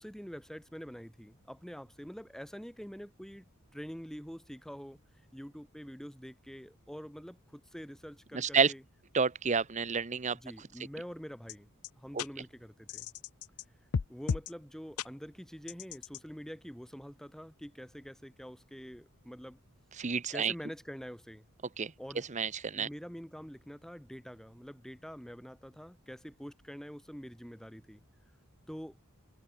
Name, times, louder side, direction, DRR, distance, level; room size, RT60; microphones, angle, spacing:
voice 1, 0.0-3.5 3.7-5.0 5.3-8.8 10.3-11.7 11.9-13.1 14.1-19.6 20.3-21.4 22.0-22.2 22.7-28.0 28.7-29.0, equal, ahead, 4.2 m, -46 dB
voice 2, 8.3-8.7 9.1-10.4 12.1-12.2 20.0-20.5 21.8-21.9 22.3-22.9, right 5 dB, 35° right, 0.8 m, -29 dB
sound 1, 11.5-11.6 11.8-11.9 12.2-12.3 12.9-13.6 13.9-14.5 15.0-15.1 15.7-16.2, left 6 dB, 80° left, 0.5 m, -34 dB
head